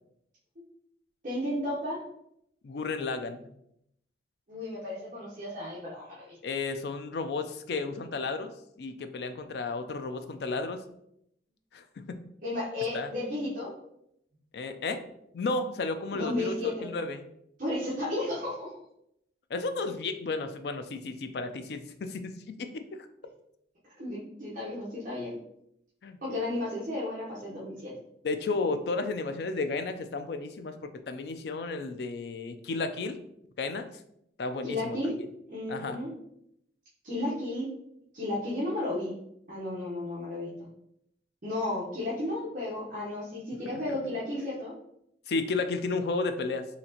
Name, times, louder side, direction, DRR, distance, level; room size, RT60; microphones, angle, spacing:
voice 1, 1.2-2.0 4.5-6.4 12.4-13.7 16.1-16.9 17.6-18.8 24.0-25.3 26.2-27.9 34.6-35.1 35.5-36.1 37.0-37.7 38.1-39.1 39.5-40.5 41.4-44.7, left 1 dB, 45° right, -7 dB, 0.9 m, -33 dB
voice 2, 2.6-3.5 6.4-8.5 8.8-10.8 11.7-12.2 12.9-13.1 14.5-15.0 15.3-17.3 19.5-22.8 26.0-26.2 28.2-33.2 33.6-33.9 34.4-35.1 35.7-36.0 45.3-46.7, left 3 dB, 60° left, 9 dB, 0.4 m, -33 dB
4.2 x 2.8 x 2.8 m, 0.76 s
head